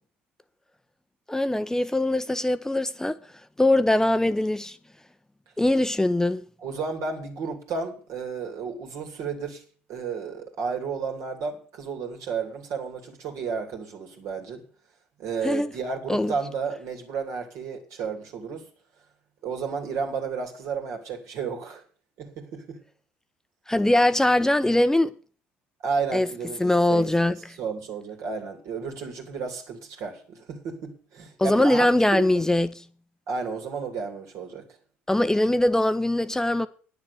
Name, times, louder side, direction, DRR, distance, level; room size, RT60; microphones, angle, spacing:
voice 1, 1.3-3.2 3.6-4.8 5.6-6.4 15.4-15.7 16.1-16.3 23.7-25.1 26.1-26.3 26.6-27.4 31.4-32.8 35.1-36.7, left 1 dB, 10° left, 0.7 m, -22 dB
voice 2, 6.6-9.6 9.9-14.6 15.2-18.6 19.4-21.8 22.2-22.8 25.8-32.2 33.3-34.6, right 5 dB, 60° right, 2.7 m, -32 dB
9.8 x 6.8 x 8.2 m
hypercardioid pair, 60°, 6 cm